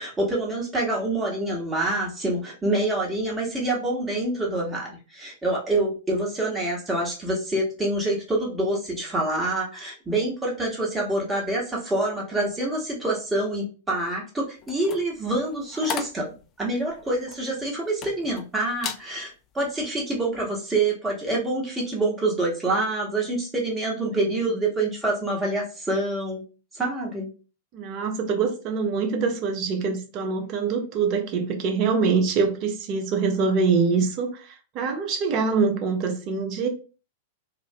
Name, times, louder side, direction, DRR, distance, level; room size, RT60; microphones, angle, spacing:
voice 1, 0.0-16.3 16.6-26.4 26.7-27.3, right 2 dB, 10° right, 1.0 m, -26 dB
sound 1, 14.6-18.4 18.8-19.1 19.6-19.8, left 6 dB, 30° left, 0.3 m, -36 dB
voice 2, 27.7-34.5 34.7-36.7, right 5 dB, 40° right, 0.6 m, -24 dB
2.4 x 2.0 x 2.6 m
figure-of-eight pair, 95°, 0 cm